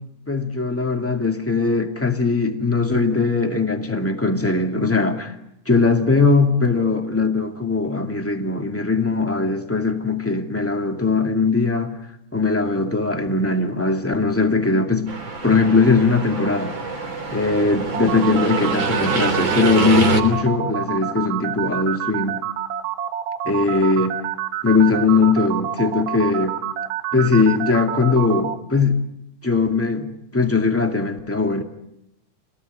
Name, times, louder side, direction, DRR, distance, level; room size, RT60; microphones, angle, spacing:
voice 1, 0.3-5.3 5.7-11.9 12.3-15.1 15.4-16.7 17.3-22.4 23.5-24.1 24.6-26.6 27.1-29.0 29.4-31.6, left 4 dB, 5° left, 1.7 m, -20 dB
sound 1, 15.1-20.2, right 4 dB, 40° right, 3.8 m, -25 dB
sound 2, 17.9-28.5, right 10 dB, 75° right, 2.8 m, -27 dB
27.5 x 18.5 x 9.4 m
omnidirectional pair, 3.3 m